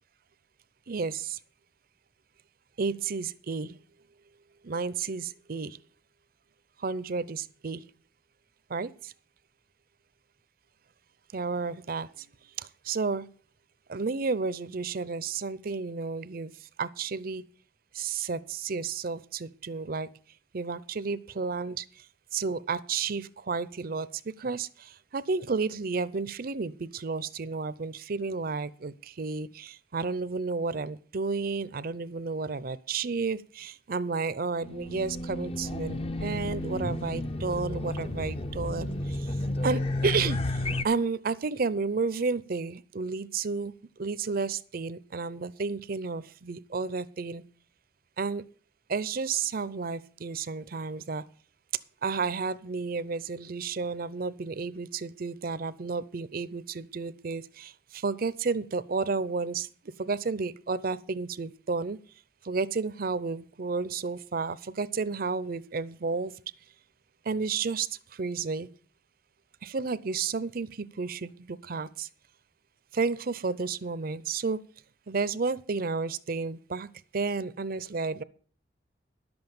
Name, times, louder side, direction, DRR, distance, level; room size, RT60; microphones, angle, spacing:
voice 1, 0.9-1.4 2.8-3.8 4.6-5.8 6.8-7.8 8.7-9.1 11.3-12.3 12.6-13.3 13.9-16.5 16.8-17.4 17.9-20.1 20.5-21.9 22.3-24.1 24.4-39.3 39.6-40.4 40.8-43.7 44.0-47.4 48.2-48.5 48.9-51.2 52.0-59.7 60.0-62.0 62.4-66.4 67.2-68.7 69.6-72.1 72.9-74.6 75.1-76.9 77.1-78.2, right 4 dB, 55° right, 17 dB, 0.6 m, -32 dB
Race car auto racing / Alarm, 34.6-40.9, left 1 dB, 30° left, 0.6 m, -32 dB
11.0 x 7.9 x 7.1 m, 0.42 s
head